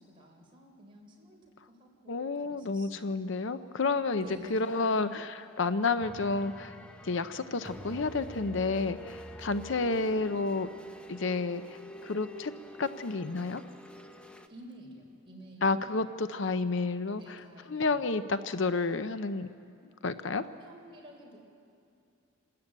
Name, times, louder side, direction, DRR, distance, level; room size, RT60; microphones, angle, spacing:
voice 1, 0.0-3.3 4.2-4.6 14.5-16.0 17.1-18.1 20.4-21.4, right 1 dB, 25° right, -1 dB, 4.1 m, -51 dB
voice 2, 2.1-6.8 7.0-10.7 11.1-12.5 12.8-13.6 15.6-17.4 17.7-19.5 20.0-20.4, left 3 dB, 60° left, 11 dB, 0.7 m, -30 dB
sound 1, 4.2-14.5, equal, 5° left, 0.8 m, -47 dB
27.5 x 13.5 x 8.9 m, 2.5 s
head